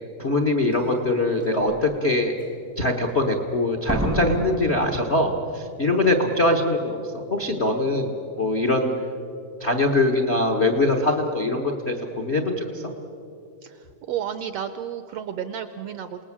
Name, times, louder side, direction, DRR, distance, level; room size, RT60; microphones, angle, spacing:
voice 1, 0.2-2.3 2.8-8.9 9.6-12.7, left 2 dB, 75° left, 4 dB, 0.6 m, -22 dB
Slam, 0.7-0.8 1.4-1.8 3.9-5.8 6.0-6.1, right 1 dB, 15° right, 0.4 m, -30 dB
voice 2, 13.6-16.2, right 9 dB, 80° right, 11 dB, 1.5 m, -32 dB
28.0 x 19.0 x 7.4 m, 2.7 s
omnidirectional pair, 3.5 m